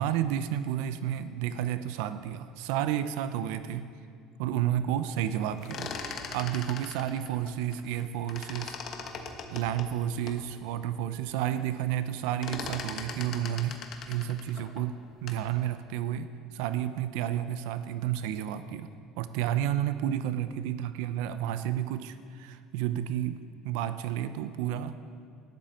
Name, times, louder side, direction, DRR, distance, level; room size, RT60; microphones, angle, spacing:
voice 1, 0.0-3.9 4.4-5.9 6.3-8.8 9.5-13.8 14.1-25.0, right 11 dB, 85° right, 12 dB, 0.7 m, -31 dB
sound 1, 5.5-8.0 8.3-10.4 10.9-11.0 11.3-11.7 12.0-15.5, left 5 dB, 45° left, 1.3 m, -40 dB
18.0 x 12.0 x 4.4 m, 2.3 s
cardioid pair, 130°, 0 cm